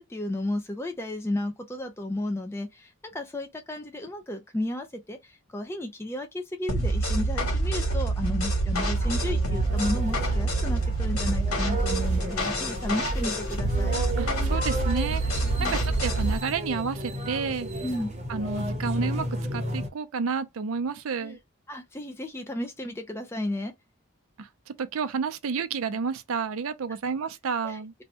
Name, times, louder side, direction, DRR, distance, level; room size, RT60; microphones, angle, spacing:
voice 1, 0.0-14.0 15.6-15.7 17.8-18.1 21.2-21.4 21.7-23.7 27.6-27.8, left 1 dB, 10° left, 0.3 m, -33 dB
sound 1, 6.7-16.4, right 2 dB, 85° left, 1.3 m, -26 dB
sound 2, 8.7-19.9, right 1 dB, 30° right, 0.7 m, -34 dB
voice 2, 14.2-17.7 18.3-19.3 19.5-21.4 24.4-27.9, right 5 dB, 75° right, 0.5 m, -30 dB
2.7 x 2.1 x 4.1 m
head